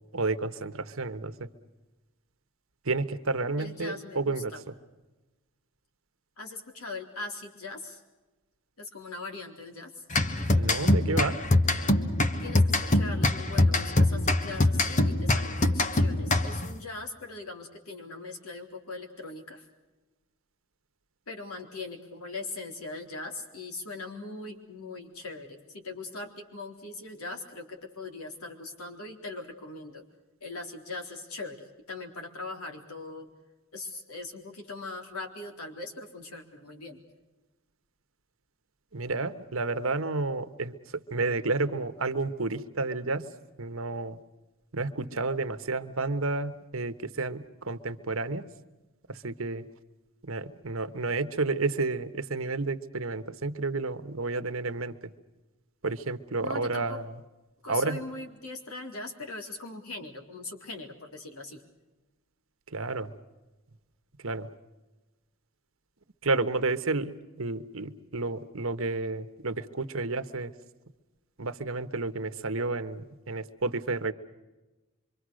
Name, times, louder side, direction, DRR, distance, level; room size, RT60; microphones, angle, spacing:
voice 1, 0.1-1.5 2.8-4.5 10.6-11.4 38.9-40.7 41.1-43.3 43.6-44.2 44.7-48.5 49.1-49.6 50.2-54.9 55.8-57.1 57.7-58.0 62.7-63.1 64.2-64.5 66.2-70.5 71.4-74.1, right 3 dB, 70° right, 10 dB, 1.3 m, -31 dB
voice 2, 3.6-4.6 6.4-8.0 8.8-10.0 12.4-19.7 21.3-30.0 30.4-33.3 33.7-37.0 56.4-57.0 57.6-61.6, left 3 dB, 90° left, 2 dB, 3.9 m, -40 dB
sound 1, 10.1-16.8, left 2 dB, 35° left, 1.2 m, -24 dB
26.0 x 24.5 x 6.4 m, 1.1 s
head